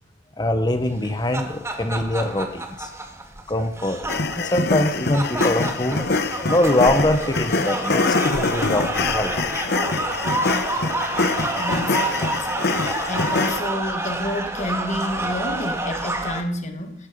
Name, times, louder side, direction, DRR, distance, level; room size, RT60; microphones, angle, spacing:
voice 1, 0.4-2.9 3.5-4.0 4.3-6.0 6.4-8.1 8.5-9.5, left 1 dB, 25° left, 8 dB, 1.2 m, -23 dB
sound 1, 1.0-16.4, right 2 dB, 15° right, 2.0 m, -28 dB
sound 2, 4.1-13.6, left 3 dB, 60° left, 1.1 m, -24 dB
voice 2, 11.6-12.6 13.1-17.1, left 1 dB, 40° left, 5 dB, 1.9 m, -29 dB
17.5 x 15.0 x 5.3 m, 0.63 s
head